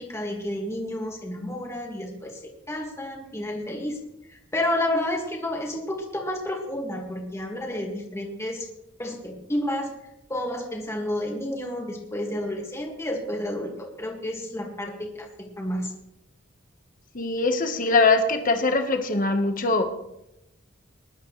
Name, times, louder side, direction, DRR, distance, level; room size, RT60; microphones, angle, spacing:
voice 1, 0.0-4.0 4.3-8.7 9.0-9.9 10.3-15.9, left 1 dB, 15° left, -1 dB, 2.0 m, -30 dB
voice 2, 17.1-19.8, left 3 dB, 45° left, 5 dB, 1.3 m, -22 dB
20.5 x 11.5 x 3.3 m, 0.84 s
head